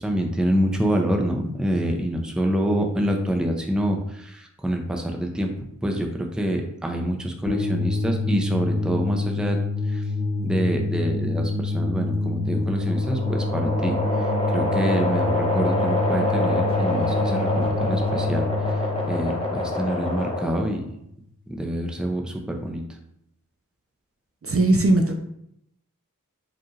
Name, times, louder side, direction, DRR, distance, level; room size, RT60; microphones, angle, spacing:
voice 1, 0.0-5.5 5.8-9.6 9.9-10.0 10.4-20.9 21.5-22.8, equal, ahead, 2 dB, 0.5 m, -26 dB
sound 1, 7.5-20.6, left 2 dB, 35° left, 1.0 m, -27 dB
sound 2, 12.5-20.8, left 1 dB, 15° left, 0.9 m, -26 dB
voice 2, 24.5-25.1, right 2 dB, 45° right, 3 dB, 0.5 m, -18 dB
4.9 x 2.4 x 3.1 m, 0.76 s
wide cardioid pair, 70°, 33 cm